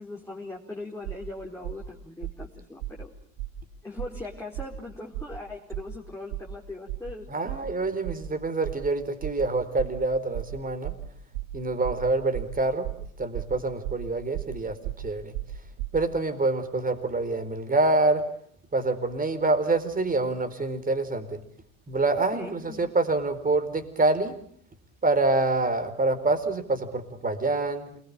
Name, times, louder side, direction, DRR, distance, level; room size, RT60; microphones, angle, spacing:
voice 1, 0.0-3.1 3.8-7.5 22.3-22.9, left 2 dB, 5° left, -2 dB, 4.6 m, -40 dB
sound 1, 1.0-1.3 1.6-1.9 2.2-2.5 2.8-3.1 3.4-3.6 4.0-4.2 4.5-4.8 5.1-5.4 5.7-6.0 6.3-6.6 6.9-7.1 7.5-7.7 8.0-8.3 8.6-8.9 9.2-9.5 9.8-10.0 10.3-10.6 10.8-11.1 11.3-11.6 11.8-12.1 12.3-12.6 12.8-13.1 13.3-13.6 13.8-14.1 14.3-14.6 14.8-15.1 15.3-16.0, right 13 dB, 60° right, 2.1 m, -35 dB
voice 2, 7.3-10.9 11.5-12.9 13.2-15.3 15.9-18.2 18.7-21.4 21.9-24.4 25.0-28.0, right 2 dB, 20° right, 9 dB, 4.5 m, -26 dB
28.0 x 21.5 x 8.9 m, 0.63 s
hypercardioid pair, 75°, 42 cm